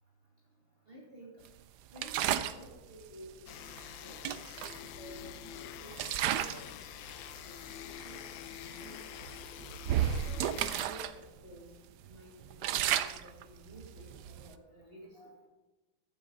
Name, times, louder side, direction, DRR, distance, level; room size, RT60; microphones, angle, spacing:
voice 1, 0.9-1.5 1.9-4.2 4.7-5.3 5.5-6.7 7.1-8.2 8.8-9.3 10.2-11.7 12.1-15.5, equal, 30° right, -3 dB, 2.4 m, -53 dB
sound 1, 2.0-2.6 3.8-3.9 4.2-5.4 5.9-6.7 7.1-7.3 8.0-8.1 8.5-8.7 9.2-11.1 11.5-11.6 12.0-14.5, right 11 dB, 75° right, 1.0 m, -33 dB
sound 2, 3.5-10.9, left 11 dB, 85° left, 1.4 m, -46 dB
15.0 x 9.6 x 4.0 m, 1.1 s
omnidirectional pair, 2.1 m